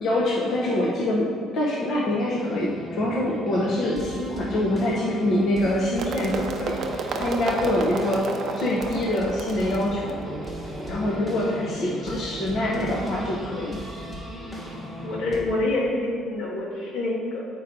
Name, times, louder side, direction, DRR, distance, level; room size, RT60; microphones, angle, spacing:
voice 1, 0.0-8.3 8.6-10.1 10.9-13.8, left 1 dB, 45° left, -3 dB, 0.8 m, -25 dB
sound 1, 2.3-15.4, equal, 10° left, 1.3 m, -36 dB
sound 2, 6.0-11.9, right 4 dB, 45° right, 0.5 m, -32 dB
voice 2, 11.1-11.5 11.8-12.2 12.5-12.9 15.0-17.4, left 2 dB, 80° left, -3 dB, 1.5 m, -28 dB
8.4 x 4.6 x 3.7 m, 2.1 s
cardioid pair, 155°, 0 cm